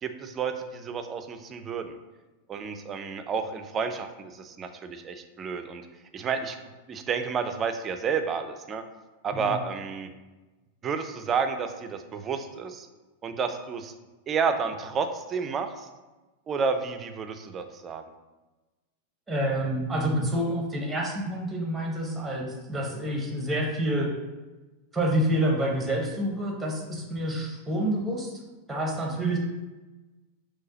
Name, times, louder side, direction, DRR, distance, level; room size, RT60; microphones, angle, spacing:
voice 1, 0.0-2.0 2.5-5.9 6.1-6.6 6.9-8.8 9.2-10.1 10.8-12.9 13.2-13.9 14.3-15.9 16.5-18.0, right 5 dB, 25° right, 8 dB, 0.4 m, -30 dB
voice 2, 19.3-24.1 24.9-28.4 28.7-29.4, right 1 dB, 10° right, 0 dB, 0.8 m, -28 dB
5.4 x 3.0 x 2.8 m, 1.2 s
figure-of-eight pair, 90°, 0 cm